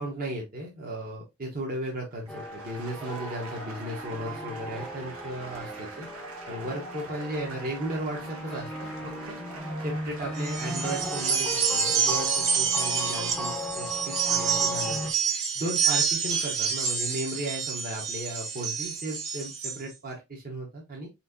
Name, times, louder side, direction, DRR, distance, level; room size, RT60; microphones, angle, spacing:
voice 1, 0.0-6.1 6.5-9.4 9.8-15.0 15.5-21.1, right 1 dB, 45° right, -2 dB, 1.1 m, -35 dB
sound 1, 2.1-11.0, right 3 dB, 90° right, 1.3 m, -43 dB
sound 2, 2.3-15.1, left 1 dB, 5° left, 0.6 m, -37 dB
sound 3, 10.4-19.8, right 6 dB, 65° right, 1.5 m, -28 dB
4.4 x 4.3 x 2.6 m, 0.23 s
head